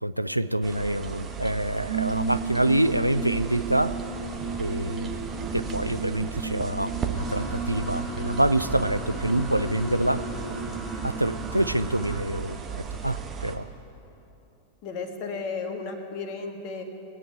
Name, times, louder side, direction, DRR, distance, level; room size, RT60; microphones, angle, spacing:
voice 1, 0.0-4.1 4.6-5.2 5.5-10.3 11.0-13.7, right 1 dB, 85° right, 13 dB, 0.4 m, -26 dB
sound 1, 0.6-13.6, right 6 dB, 25° right, 1.2 m, -37 dB
sound 2, 1.8-12.1, right 4 dB, 25° left, 2.6 m, -35 dB
sound 3, 7.1-12.2, right 2 dB, ahead, 1.9 m, -39 dB
voice 2, 14.8-16.8, left 4 dB, 40° left, 6 dB, 1.4 m, -34 dB
22.0 x 8.6 x 4.6 m, 2.9 s
figure-of-eight pair, 90°, 0 cm